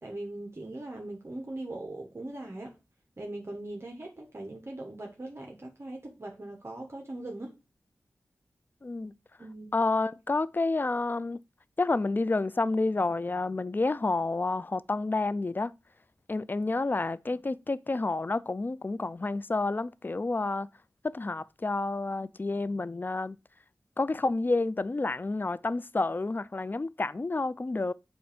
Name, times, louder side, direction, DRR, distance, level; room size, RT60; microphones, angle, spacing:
voice 1, 0.0-2.8 3.2-7.5 9.4-9.7, right 1 dB, 45° right, 1.2 m, -40 dB
voice 2, 8.8-9.1 9.7-11.4 11.8-15.7 16.3-20.7 21.0-23.4 24.0-27.9, left 3 dB, 30° left, 0.4 m, -29 dB
7.8 x 2.6 x 5.1 m
cardioid pair, 45°, 6 cm